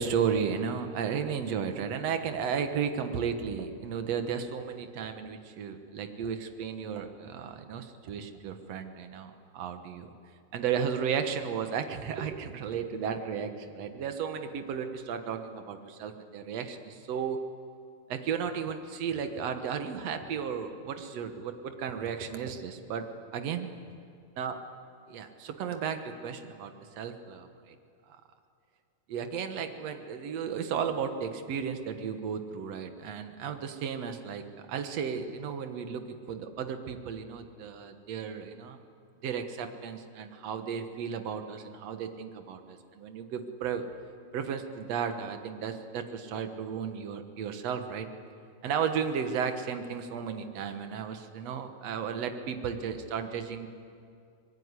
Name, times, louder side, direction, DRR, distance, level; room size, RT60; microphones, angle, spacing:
voice 1, 0.0-10.1 10.5-17.4 18.1-23.0 23.3-23.7 24.4-24.6 25.1-27.8 29.1-38.8 39.2-43.8 44.3-48.1 48.6-53.7, right 7 dB, 60° right, 7 dB, 1.8 m, -34 dB
25.5 x 20.0 x 9.8 m, 2.4 s
omnidirectional pair, 4.7 m